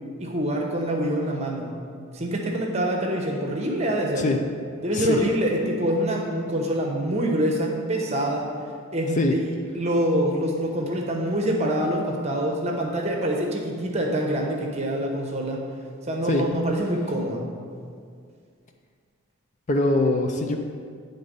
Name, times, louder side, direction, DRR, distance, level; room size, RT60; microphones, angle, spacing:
voice 1, 0.2-1.8 2.1-4.3 4.8-8.5 8.9-9.4 9.7-15.6 16.1-17.5, right 1 dB, 30° right, 0 dB, 0.9 m, -25 dB
voice 2, 19.7-20.6, left 2 dB, 35° left, 4 dB, 0.4 m, -22 dB
9.6 x 3.9 x 5.2 m, 2.1 s
head